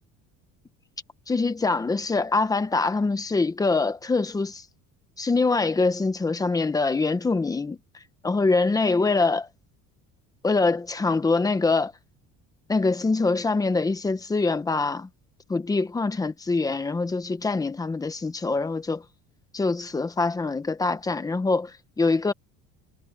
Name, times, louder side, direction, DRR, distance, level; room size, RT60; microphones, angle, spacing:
voice 1, 1.3-4.6 5.2-7.8 8.2-9.5 10.4-11.9 12.7-15.1 15.5-19.0 19.5-22.3, left 3 dB, 10° left, 1.0 m, -24 dB
cardioid pair, 180°, 33 cm